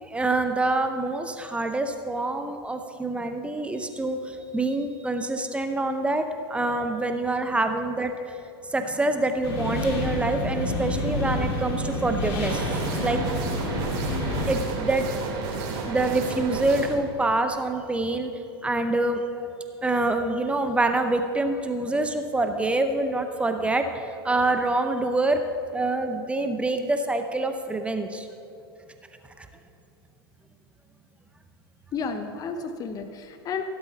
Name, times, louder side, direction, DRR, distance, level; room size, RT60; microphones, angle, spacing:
voice 1, 0.0-8.1 8.7-12.8 13.0-13.2 14.5-15.1 15.8-18.3 18.6-19.5 19.8-23.8 24.2-25.4 25.7-28.3 29.4-29.5, right 2 dB, 10° right, 7 dB, 0.7 m, -26 dB
sound 1, 9.4-14.5, left 1 dB, 80° left, 2.8 m, -29 dB
sound 2, 12.5-16.9, right 4 dB, 60° right, 3.2 m, -31 dB
voice 2, 31.9-33.6, left 5 dB, 30° left, 8 dB, 0.8 m, -32 dB
16.5 x 7.9 x 4.1 m, 2.7 s
hypercardioid pair, 120°, 13 cm